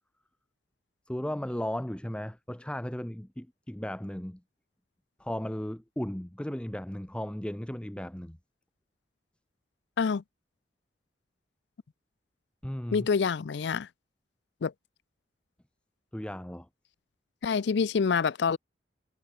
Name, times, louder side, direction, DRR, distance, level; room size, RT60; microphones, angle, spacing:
voice 1, 1.1-4.4 5.2-8.4 12.6-13.1 16.1-16.7, equal, 5° left, 0.6 m, -35 dB
voice 2, 12.9-13.9 14.6-14.7 17.4-18.6, left 5 dB, 65° left, 0.4 m, -26 dB
head